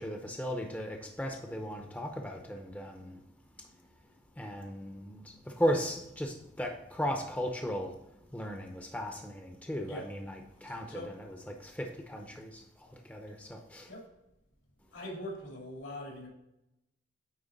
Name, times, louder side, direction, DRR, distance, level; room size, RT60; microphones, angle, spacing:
voice 1, 0.0-3.2 3.6-3.7 4.4-8.0 8.3-13.9, equal, 10° left, 3 dB, 0.6 m, -36 dB
voice 2, 10.6-11.1 13.9-14.1 14.9-16.3, left 1 dB, 85° left, -1 dB, 2.7 m, -42 dB
9.0 x 3.9 x 3.9 m, 0.87 s
head